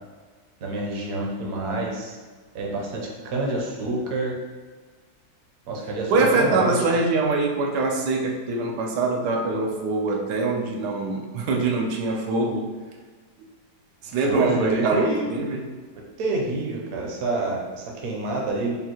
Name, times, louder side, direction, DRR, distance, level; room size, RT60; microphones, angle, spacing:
voice 1, 0.6-2.2 2.5-4.4 5.7-6.8 14.2-15.3 16.2-18.8, right 2 dB, 65° right, -1 dB, 1.1 m, -27 dB
voice 2, 6.1-12.7 14.0-15.7, right 3 dB, 90° right, 1 dB, 1.2 m, -23 dB
5.2 x 2.3 x 2.9 m, 1.5 s
omnidirectional pair, 1.7 m